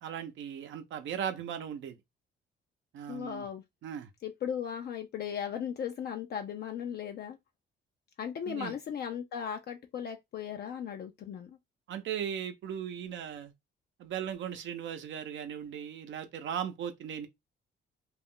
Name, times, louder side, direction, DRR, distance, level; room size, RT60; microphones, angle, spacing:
voice 1, 0.0-2.0 2.9-3.5 3.8-4.1 8.5-8.7 11.9-13.5 14.0-17.3, right 9 dB, 70° right, 0.6 m, -37 dB
voice 2, 3.1-3.6 4.2-7.4 8.2-11.6, left 8 dB, 55° left, 0.4 m, -37 dB
2.4 x 2.1 x 3.6 m
cardioid pair, 90°, 20 cm